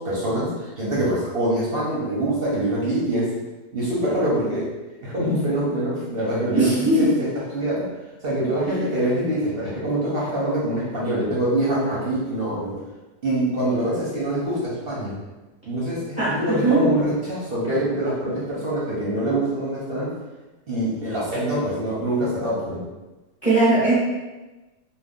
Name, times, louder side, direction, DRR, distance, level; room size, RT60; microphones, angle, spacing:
voice 1, 0.0-3.3 3.7-4.7 5.0-7.1 7.5-7.9 8.2-12.8 13.2-15.1 15.7-20.1 20.7-22.8, right 1 dB, 50° right, -6 dB, 0.7 m, -24 dB
voice 2, 6.6-7.1 8.7-8.8 16.2-16.8 23.4-23.9, right 2 dB, 25° left, -10 dB, 0.9 m, -19 dB
3.0 x 2.2 x 3.6 m, 1.1 s
omnidirectional pair, 1.8 m